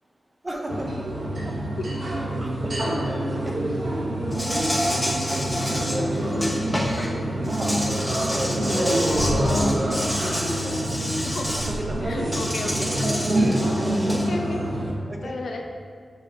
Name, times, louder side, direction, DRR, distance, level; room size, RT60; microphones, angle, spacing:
voice 1, 0.4-1.1 1.5-1.6 2.4-2.7 3.2-5.1 5.6-6.1 6.5-11.2 11.6-12.8 15.1-15.4, right 1 dB, 20° right, 1 dB, 0.8 m, -35 dB
sound 1, 0.7-14.9, right 1 dB, 45° right, 1.3 m, -26 dB
Insect, 4.3-7.1 7.4-11.7 12.3-14.3, equal, 5° left, 1.1 m, -29 dB
voice 2, 12.0-12.9 14.1-14.6 15.2-15.6, left 3 dB, 65° left, 2 dB, 0.8 m, -33 dB
7.2 x 4.9 x 5.5 m, 2.1 s
wide cardioid pair, 165°, 0 cm